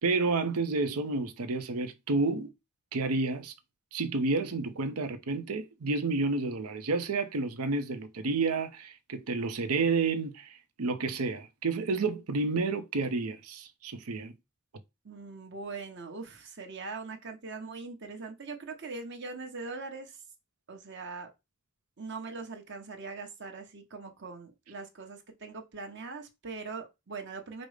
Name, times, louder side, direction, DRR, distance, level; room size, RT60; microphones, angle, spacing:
voice 1, 0.0-2.5 2.9-3.5 3.9-14.3, right 3 dB, 90° right, 0.7 m, -30 dB
voice 2, 15.0-20.2 20.7-21.3 22.0-27.7, right 4 dB, 55° right, 1.0 m, -41 dB
5.2 x 2.1 x 4.9 m
head